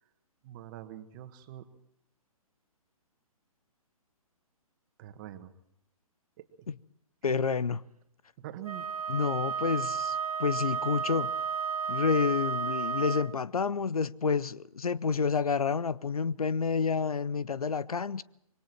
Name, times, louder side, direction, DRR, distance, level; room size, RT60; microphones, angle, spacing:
voice 1, 0.4-1.7 5.0-5.5 6.4-6.5 8.4-8.9, right 12 dB, 35° right, 1.7 m, -44 dB
voice 2, 7.2-7.8 9.1-11.3 11.9-18.2, left 5 dB, 75° left, 0.7 m, -29 dB
Wind instrument woodwind instrument, 8.6-13.4, right 6 dB, 75° right, 0.9 m, -32 dB
26.0 x 23.0 x 4.6 m
figure-of-eight pair, 130°, 19 cm